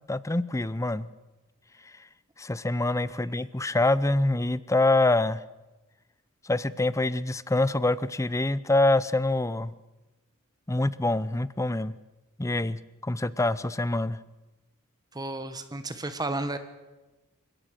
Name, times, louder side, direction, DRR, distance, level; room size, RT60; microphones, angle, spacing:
voice 1, 0.1-1.1 2.4-5.4 6.4-9.7 10.7-11.9 12.4-14.2, left 2 dB, 15° left, 18 dB, 0.6 m, -25 dB
voice 2, 15.1-16.6, right 2 dB, 20° right, 10 dB, 1.3 m, -32 dB
27.5 x 17.0 x 6.6 m, 1.1 s
head